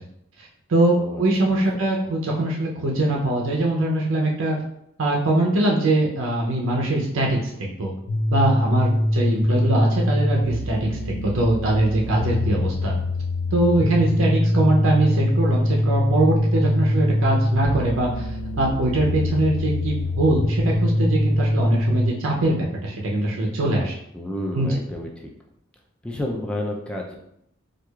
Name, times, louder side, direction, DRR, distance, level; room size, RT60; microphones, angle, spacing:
voice 1, 0.7-4.6 5.0-7.9 8.3-12.9 13.5-18.3 18.6-23.9 24.5-24.7, right 1 dB, 70° right, -2 dB, 0.5 m, -22 dB
sound 1, 8.1-22.1, left 1 dB, 80° left, 0.6 m, -23 dB
voice 2, 24.1-25.3 26.0-27.1, left 1 dB, 5° left, -1 dB, 0.3 m, -30 dB
4.5 x 2.4 x 2.3 m, 0.76 s
head